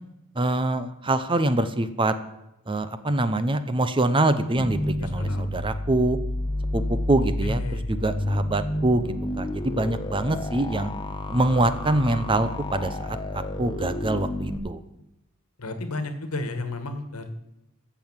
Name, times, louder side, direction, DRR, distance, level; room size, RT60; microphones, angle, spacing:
voice 1, 0.4-2.1 2.7-6.2 6.7-7.6 7.9-10.9 11.3-14.8, right 2 dB, 25° right, 12 dB, 0.7 m, -25 dB
sound 1, 4.6-14.6, left 1 dB, 20° left, 1.0 m, -30 dB
voice 2, 4.9-5.5 6.9-7.9 15.6-17.3, left 2 dB, 80° left, 8 dB, 1.6 m, -33 dB
14.0 x 7.0 x 7.3 m, 0.90 s
head